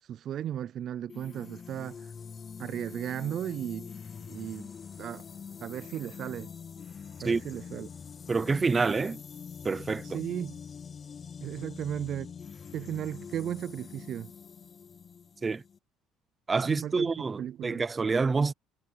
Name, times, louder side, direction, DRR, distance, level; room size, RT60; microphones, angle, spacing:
voice 1, 0.0-2.1 2.6-3.9 4.3-4.7 5.0-5.2 5.6-6.5 7.2-7.9 10.0-10.5 11.4-12.3 12.7-14.3 16.6-17.8, right 10 dB, 55° right, 0.5 m, -36 dB
sound 1, 1.1-15.8, left 6 dB, 35° left, 0.7 m, -44 dB
voice 2, 8.3-9.2 9.6-10.2 15.4-15.6 16.5-18.5, right 4 dB, 25° right, 0.8 m, -27 dB
supercardioid pair, 100°, 0 cm